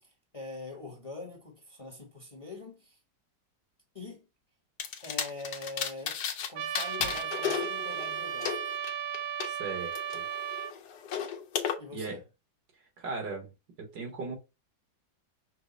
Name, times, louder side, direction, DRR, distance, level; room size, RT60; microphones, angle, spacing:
voice 1, 0.0-3.0 3.9-4.3 5.0-6.2 6.5-8.8 11.8-12.2, left 3 dB, 25° left, 0.9 m, -43 dB
sound 1, 4.8-6.5 6.7-9.5 9.9-11.7, left 8 dB, 70° left, 1.3 m, -34 dB
Trumpet, 6.5-10.7, right 9 dB, 70° right, 1.1 m, -35 dB
voice 2, 9.5-10.2 11.9-12.2 13.0-13.5 13.8-14.3, right 4 dB, 85° right, 2.3 m, -37 dB
6.0 x 2.2 x 4.0 m
omnidirectional pair, 1.9 m